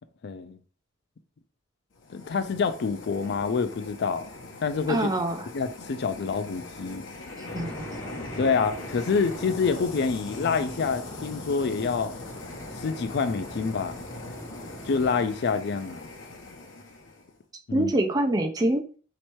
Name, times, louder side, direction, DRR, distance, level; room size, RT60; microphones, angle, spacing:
voice 1, 0.2-0.6 2.1-4.2 4.6-5.1 5.5-7.0 8.4-12.1 12.8-14.0 14.8-16.1 17.7-17.9, left 5 dB, 60° left, 0.4 m, -27 dB
sound 1, 2.0-17.4, left 3 dB, 75° left, 0.8 m, -41 dB
voice 2, 4.9-5.5 7.4-7.8 17.7-18.8, right 1 dB, 20° right, 0.4 m, -25 dB
sound 2, 7.5-15.4, equal, 15° left, 1.0 m, -42 dB
3.2 x 2.9 x 4.5 m
head